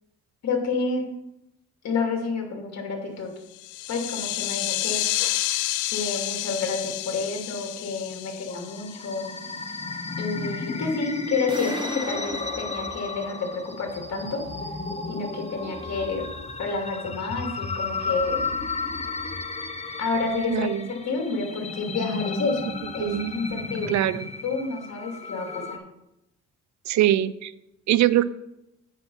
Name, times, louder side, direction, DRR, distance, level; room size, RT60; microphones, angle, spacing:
voice 1, 0.4-1.1 1.8-3.3 3.9-5.0 5.9-9.4 10.2-14.4 15.1-16.3 16.6-18.4 20.0-24.0 24.4-25.8, left 4 dB, 60° left, 2 dB, 2.5 m, -29 dB
sound 1, 3.5-9.6, left 15 dB, 80° left, 0.5 m, -30 dB
sound 2, 8.5-25.8, left 4 dB, 20° left, 0.8 m, -33 dB
sound 3, 11.5-14.3, right 2 dB, 15° right, 1.6 m, -40 dB
voice 2, 20.5-20.9 23.0-23.3 23.9-24.3 26.9-27.5 27.9-28.3, right 13 dB, 65° right, 17 dB, 0.5 m, -22 dB
8.2 x 6.0 x 5.4 m, 0.86 s
cardioid pair, 90°, 30 cm